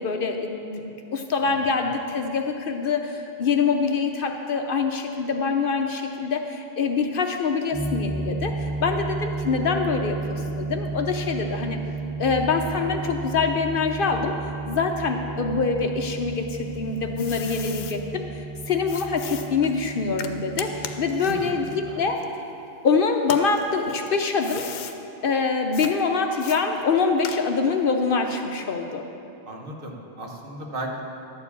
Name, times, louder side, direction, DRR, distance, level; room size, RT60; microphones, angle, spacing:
voice 1, 0.0-11.8 12.2-14.3 14.7-22.2 22.8-24.6 25.2-29.0, left 4 dB, 60° left, 4 dB, 0.7 m, -25 dB
voice 2, 1.4-1.8 11.4-11.6 21.2-22.0 29.5-31.0, right 1 dB, 55° right, 0 dB, 1.2 m, -36 dB
sound 1, 7.7-22.1, right 3 dB, 30° right, 0.7 m, -33 dB
sound 2, 16.5-18.0 18.9-22.8 23.2-25.0 25.7-25.9 26.4-27.7, left 8 dB, 85° left, 0.9 m, -38 dB
11.5 x 4.8 x 8.3 m, 2.9 s
omnidirectional pair, 1.1 m